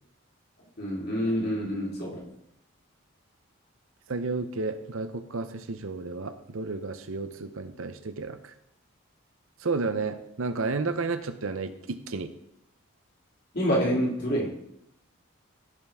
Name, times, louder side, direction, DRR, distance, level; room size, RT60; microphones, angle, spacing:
voice 1, 0.8-2.2 13.5-14.5, equal, 45° left, -3 dB, 2.7 m, -27 dB
voice 2, 4.1-8.5 9.6-12.3, right 3 dB, 70° right, 10 dB, 0.7 m, -32 dB
15.0 x 5.7 x 3.5 m, 0.77 s
head